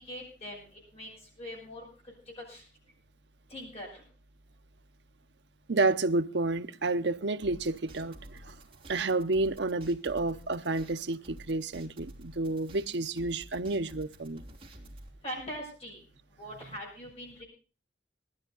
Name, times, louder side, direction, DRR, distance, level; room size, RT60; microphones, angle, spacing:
voice 1, 0.1-0.6 0.9-1.1 1.4-1.8 2.4-2.6 3.5-4.0 15.2-16.0 16.4-17.4, equal, 35° left, 7.1 m, -41 dB
voice 2, 5.7-8.6 8.9-14.4, right 2 dB, 65° right, 0.8 m, -30 dB
sound 1, 7.4-15.1, right 1 dB, 30° right, 3.0 m, -50 dB
19.0 x 13.0 x 3.9 m
head